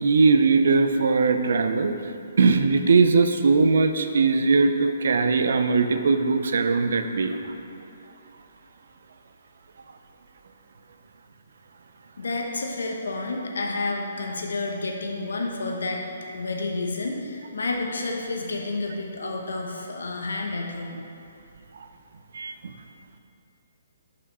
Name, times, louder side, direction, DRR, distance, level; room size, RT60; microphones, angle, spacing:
voice 1, 0.0-1.9 2.4-7.4 22.3-22.7, right 4 dB, 70° right, 8 dB, 0.5 m, -20 dB
voice 2, 12.2-16.1 16.3-21.0, left 3 dB, 85° left, 1 dB, 0.9 m, -30 dB
5.8 x 4.9 x 5.4 m, 2.6 s
hypercardioid pair, 155°, 0 cm